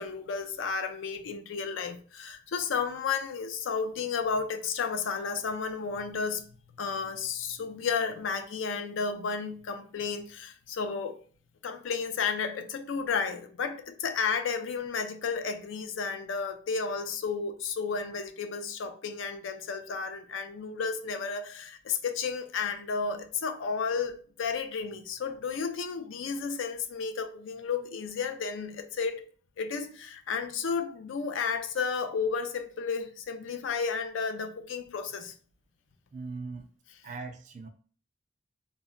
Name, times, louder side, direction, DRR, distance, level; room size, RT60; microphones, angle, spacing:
voice 1, 0.0-6.4 6.8-11.2 11.6-29.2 29.6-35.3, left 5 dB, 85° left, 0.4 m, -32 dB
voice 2, 36.1-36.7 37.0-37.7, right 4 dB, 40° right, 0.3 m, -39 dB
2.2 x 2.0 x 3.6 m
head